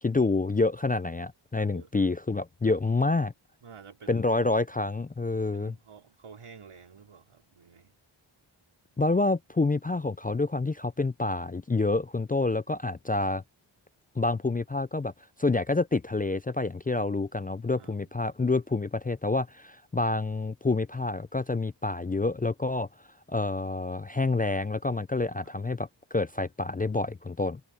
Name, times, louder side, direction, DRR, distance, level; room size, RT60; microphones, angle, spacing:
voice 1, 0.0-3.3 4.1-5.7 9.0-13.4 14.2-15.1 15.4-22.9 23.3-27.6, left 3 dB, 20° left, 0.4 m, -28 dB
voice 2, 3.6-4.6 5.5-8.0 16.9-17.1 17.7-18.1 25.4-25.5, right 6 dB, 85° right, 4.2 m, -50 dB
open air
cardioid pair, 65°, 49 cm